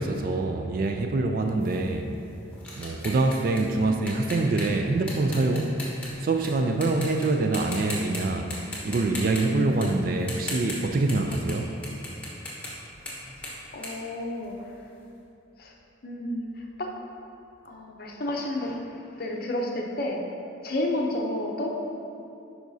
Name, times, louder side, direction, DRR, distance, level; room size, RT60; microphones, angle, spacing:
voice 1, 0.0-2.1 2.8-5.8 6.2-8.5 8.8-11.7, right 2 dB, 45° right, 4 dB, 0.3 m, -25 dB
sound 1, 1.6-6.5 6.8-7.3 7.5-8.2 8.5-14.8, left 2 dB, 5° left, 1.2 m, -38 dB
voice 2, 13.7-14.7 15.6-15.7 16.0-16.9 17.6-18.8 19.2-20.2 20.6-21.7, left 1 dB, 50° left, 0 dB, 0.6 m, -31 dB
11.0 x 4.7 x 2.7 m, 2.7 s
head